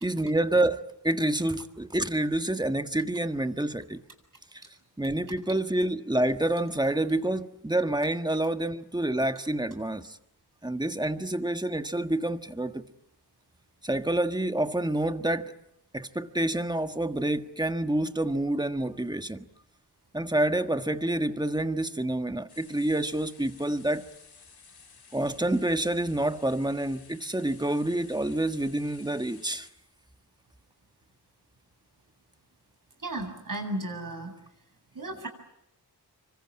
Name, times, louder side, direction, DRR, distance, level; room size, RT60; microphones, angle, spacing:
voice 1, 0.0-4.0 4.5-4.6 5.0-10.2 10.6-12.8 13.8-15.5 15.9-19.4 20.1-24.1 25.1-29.7, right 1 dB, 10° right, 1.5 m, -28 dB
sound 1, 22.5-29.7, left 5 dB, 75° left, 6.9 m, -54 dB
voice 2, 33.0-34.3 34.9-35.3, right 1 dB, 50° right, 7.8 m, -34 dB
27.0 x 25.0 x 8.7 m
wide cardioid pair, 85°, 40 cm